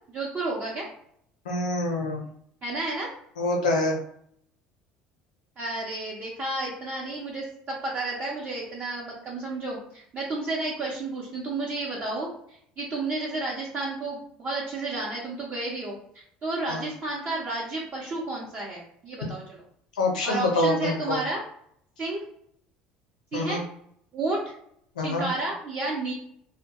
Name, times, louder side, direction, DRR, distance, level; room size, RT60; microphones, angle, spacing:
voice 1, 0.1-0.9 2.6-3.1 5.6-16.0 16.4-19.6 20.2-21.4 22.0-22.2 23.3-23.6 24.1-24.5 25.0-26.1, right 2 dB, 40° right, -5 dB, 0.7 m, -31 dB
voice 2, 1.5-2.2 3.4-3.9 16.7-16.8 20.0-21.2 23.3-23.6 25.0-25.3, left 2 dB, 90° left, 1 dB, 0.6 m, -26 dB
2.2 x 2.1 x 2.8 m, 0.69 s
hypercardioid pair, 70°, 4 cm